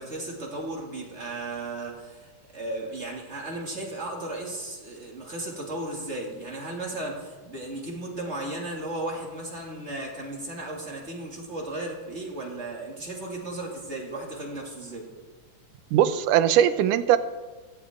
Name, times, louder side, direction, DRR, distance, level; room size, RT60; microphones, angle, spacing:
voice 1, 0.0-15.1, right 2 dB, 25° right, -1 dB, 2.2 m, -35 dB
voice 2, 15.9-17.2, right 10 dB, 85° right, 12 dB, 2.3 m, -20 dB
16.5 x 15.0 x 3.6 m, 1.3 s
omnidirectional pair, 3.5 m